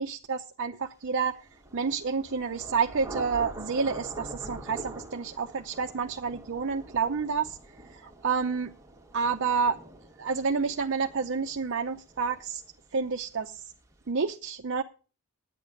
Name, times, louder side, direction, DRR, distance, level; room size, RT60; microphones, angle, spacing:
voice 1, 0.0-1.4 1.7-7.6 7.9-8.7 9.1-9.8 10.2-12.6 12.9-13.7 14.1-14.8, right 5 dB, 55° right, 5 dB, 0.6 m, -29 dB
Thunder / Rain, 1.4-13.0, right 2 dB, 15° right, 1.5 m, -44 dB
9.9 x 8.4 x 6.5 m, 0.35 s
head